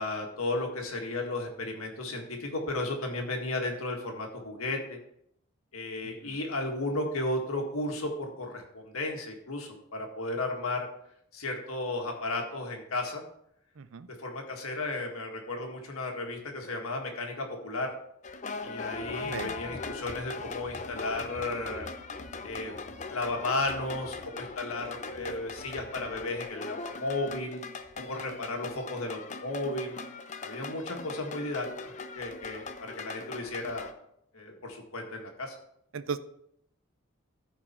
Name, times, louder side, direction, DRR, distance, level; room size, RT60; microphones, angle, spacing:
voice 1, 0.0-5.0 5.7-10.9 11.3-13.2 14.2-17.9 18.6-21.9 22.4-27.6 28.0-30.0 30.4-33.9 34.3-35.6, left 2 dB, 90° left, 2 dB, 1.9 m, -34 dB
sound 1, 18.2-33.9, left 4 dB, 35° left, 0.6 m, -40 dB
voice 2, 19.1-19.5 35.9-36.2, right 5 dB, 70° right, 13 dB, 0.5 m, -35 dB
14.0 x 4.7 x 4.4 m, 0.73 s
head